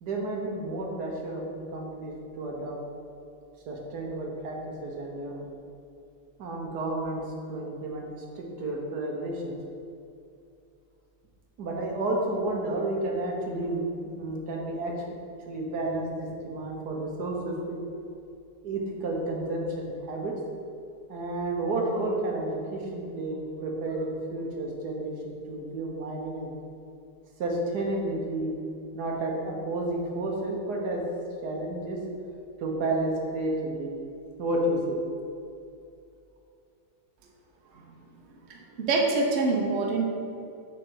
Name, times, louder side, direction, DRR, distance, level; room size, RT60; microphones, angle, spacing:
voice 1, 0.0-2.8 3.7-5.4 6.4-8.1 8.3-9.6 11.6-13.8 14.2-14.9 15.5-17.8 18.6-20.3 21.1-26.5 27.4-28.5 28.9-31.0 31.4-32.0 32.6-33.9 34.4-35.0, right 2 dB, 85° right, -1 dB, 1.7 m, -31 dB
voice 2, 38.5-40.0, right 3 dB, 50° right, 0 dB, 1.1 m, -25 dB
7.5 x 3.7 x 6.2 m, 2.6 s
omnidirectional pair, 1.7 m